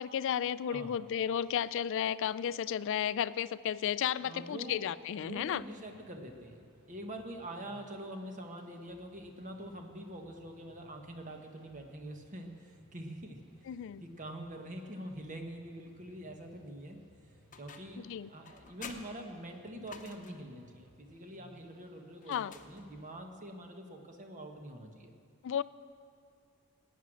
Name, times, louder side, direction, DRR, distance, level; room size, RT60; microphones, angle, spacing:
voice 1, 0.0-5.6 13.7-14.0 18.0-18.3 22.3-22.5 25.4-25.6, left 9 dB, 60° left, 17 dB, 0.3 m, -33 dB
voice 2, 4.2-13.4 14.0-17.0 17.6-25.1, right 1 dB, 35° right, 4 dB, 1.3 m, -45 dB
sound 1, 5.2-23.1, left 1 dB, 20° right, 3.9 m, -64 dB
sound 2, 17.5-18.1 18.4-20.5 22.2-23.2, left 5 dB, 35° left, 0.9 m, -50 dB
18.5 x 9.3 x 6.3 m, 2.3 s
head